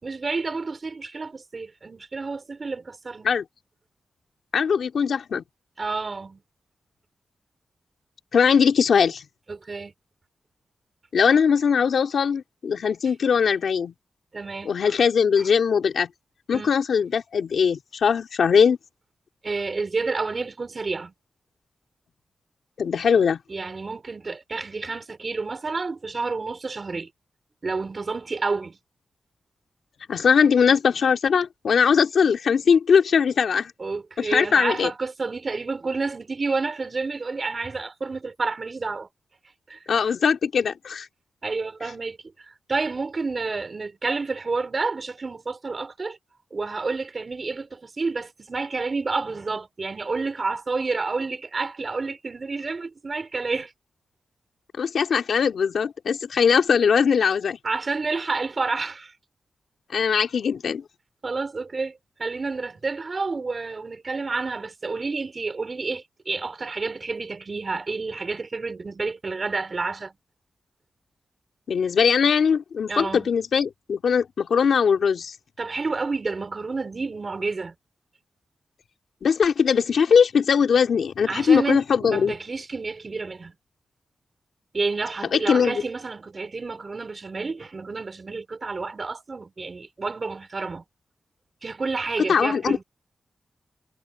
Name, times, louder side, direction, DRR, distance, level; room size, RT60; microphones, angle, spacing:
voice 1, 0.0-3.3 5.8-6.4 9.5-9.9 14.3-14.9 16.5-16.7 19.4-21.1 23.5-27.1 27.6-28.8 33.8-39.1 39.7-39.8 41.4-46.2 46.5-53.7 57.6-59.2 61.2-70.1 72.9-73.3 75.6-77.7 81.3-83.5 84.7-90.8 91.6-92.8, right 4 dB, 40° right, 5.1 m, -29 dB
voice 2, 4.5-5.4 8.3-9.2 11.1-13.9 14.6-16.1 16.5-18.8 22.8-23.4 30.1-33.7 34.2-34.9 39.9-41.1 54.8-57.6 59.9-60.8 71.7-75.3 79.2-82.3 85.3-85.8 92.3-92.8, left 6 dB, 75° left, 2.6 m, -20 dB
wide cardioid pair, 110°, 0 cm